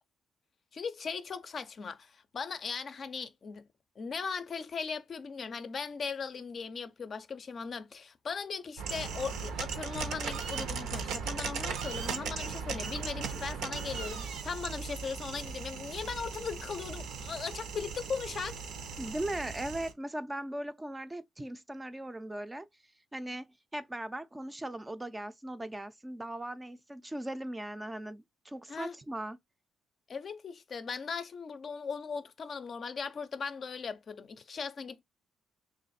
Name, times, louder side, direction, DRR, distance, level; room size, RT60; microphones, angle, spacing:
voice 1, 0.7-3.6 4.0-18.6 28.7-28.9 30.1-35.0, left 5 dB, 45° left, 0.5 m, -38 dB
sound 1, 8.8-19.9, right 5 dB, 85° right, 0.7 m, -38 dB
voice 2, 19.0-22.7 23.1-23.5 23.7-29.4, right 1 dB, 15° right, 0.4 m, -38 dB
3.1 x 2.4 x 4.0 m
cardioid pair, 90°, 0 cm